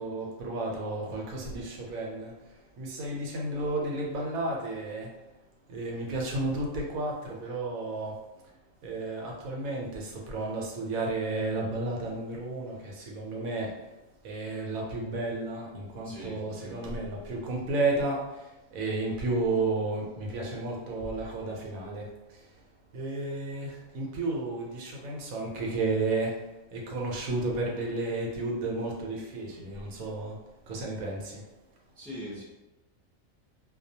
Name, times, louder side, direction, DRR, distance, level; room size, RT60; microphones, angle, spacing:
voice 1, 0.0-5.1 5.7-8.2 8.8-13.8 14.2-22.7 22.9-26.4 26.7-30.4 30.7-31.5, right 2 dB, 90° right, -1 dB, 1.1 m, -32 dB
voice 2, 16.0-17.2 32.0-32.4, equal, ahead, -8 dB, 0.4 m, -42 dB
2.3 x 2.2 x 2.7 m, 1.0 s
omnidirectional pair, 1.4 m